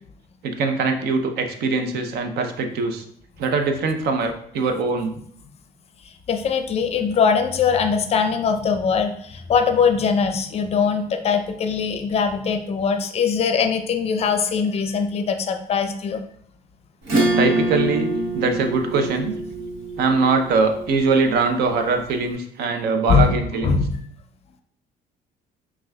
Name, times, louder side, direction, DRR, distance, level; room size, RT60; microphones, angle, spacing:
voice 1, 0.4-3.0 3.4-5.2 17.4-19.4 20.0-23.8, right 4 dB, 70° right, 6 dB, 0.6 m, -22 dB
voice 2, 6.3-16.2 23.1-23.3 23.6-24.0, left 6 dB, 40° left, 7 dB, 0.5 m, -21 dB
Acoustic guitar / Strum, 17.0-22.0, right 1 dB, 90° right, 1.2 m, -25 dB
5.9 x 2.3 x 2.2 m, 0.65 s
cardioid pair, 110°, 17 cm